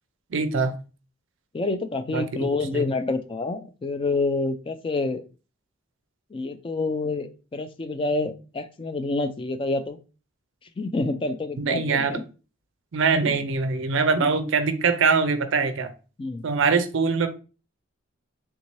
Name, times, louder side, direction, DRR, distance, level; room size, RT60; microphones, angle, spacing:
voice 1, 0.3-0.7 2.1-2.9 11.6-12.2 12.9-15.9 16.4-17.3, right 4 dB, 60° right, 9 dB, 0.4 m, -23 dB
voice 2, 1.5-5.2 6.3-10.0 10.8-12.2 16.2-16.4, left 3 dB, 25° left, 9 dB, 0.3 m, -27 dB
3.5 x 2.7 x 3.0 m, 0.34 s
head